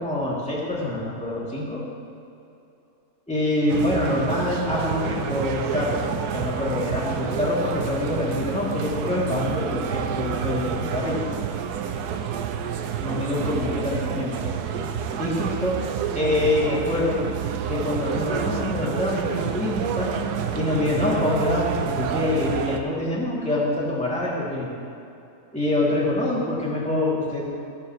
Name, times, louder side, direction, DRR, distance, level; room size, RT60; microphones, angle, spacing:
voice 1, 0.0-1.8 3.3-6.1 6.3-11.2 13.0-14.4 15.2-15.7 16.1-17.2 17.7-20.1 20.5-24.7 25.5-27.4, left 1 dB, 5° left, -7 dB, 2.7 m, -25 dB
sound 1, 3.7-22.8, right 7 dB, 90° right, 1.3 m, -29 dB
14.5 x 14.5 x 3.2 m, 2.8 s
omnidirectional pair, 1.6 m